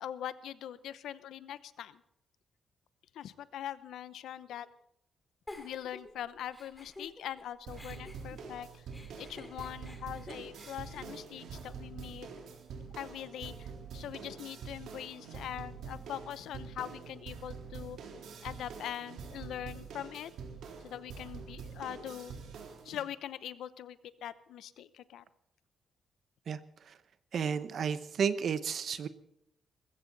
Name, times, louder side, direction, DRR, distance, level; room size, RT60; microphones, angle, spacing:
voice 1, 0.0-2.0 3.1-4.7 5.6-8.9 9.2-12.3 13.0-18.0 18.4-20.3 20.8-22.3 22.8-25.2, left 11 dB, 90° left, 15 dB, 0.8 m, -42 dB
Giggle, 5.5-7.4 7.7-12.0, left 2 dB, 15° left, 2.5 m, -51 dB
sound 1, 7.7-23.0, right 5 dB, 80° right, 3.8 m, -46 dB
voice 2, 27.3-29.1, right 7 dB, 50° right, 13 dB, 1.0 m, -32 dB
20.5 x 15.5 x 4.1 m, 0.77 s
wide cardioid pair, 165°, 0 cm